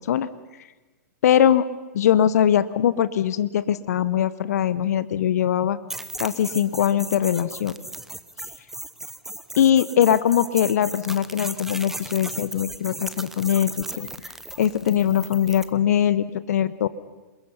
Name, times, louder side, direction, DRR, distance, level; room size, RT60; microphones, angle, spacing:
voice 1, 1.2-1.6 1.9-5.8 6.2-7.7 9.6-14.1 14.6-16.9, left 10 dB, 65° left, 15 dB, 0.9 m, -21 dB
sound 1, 5.9-15.7, right 1 dB, 5° right, 1.0 m, -36 dB
27.0 x 22.0 x 5.6 m, 1.2 s
hypercardioid pair, 120°, 9 cm